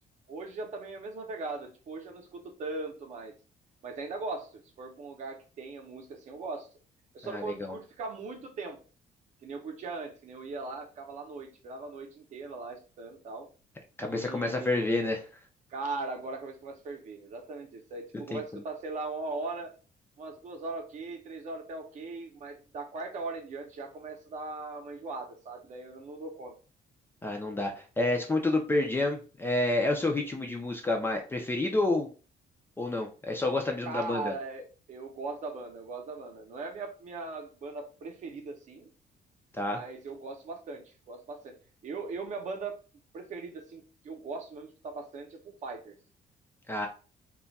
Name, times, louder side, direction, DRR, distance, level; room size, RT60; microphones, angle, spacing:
voice 1, 0.3-3.3 3.8-6.7 7.1-8.8 9.4-13.5 14.1-14.9 15.7-19.7 20.2-26.5 33.8-38.9 39.7-41.6 41.8-42.8 43.1-45.9, right 3 dB, 50° right, 4 dB, 0.7 m, -39 dB
voice 2, 7.2-7.8 14.0-15.2 18.3-18.4 27.2-32.1 32.8-34.3 39.5-39.8 46.7-46.9, left 2 dB, 15° left, 2 dB, 0.4 m, -29 dB
2.3 x 2.1 x 3.9 m, 0.35 s
cardioid pair, 165°, 16 cm